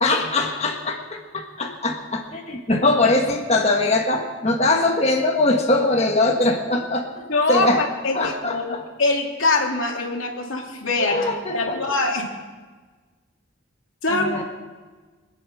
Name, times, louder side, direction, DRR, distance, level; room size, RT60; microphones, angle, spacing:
voice 1, 0.0-7.1 7.5-7.8 8.1-8.8 11.0-12.0 14.1-14.4, left 2 dB, 35° left, 1 dB, 1.3 m, -22 dB
voice 2, 7.3-11.2 11.5-12.3 14.0-14.3, left 2 dB, 90° left, 0 dB, 2.7 m, -23 dB
24.5 x 8.8 x 6.2 m, 1.3 s
head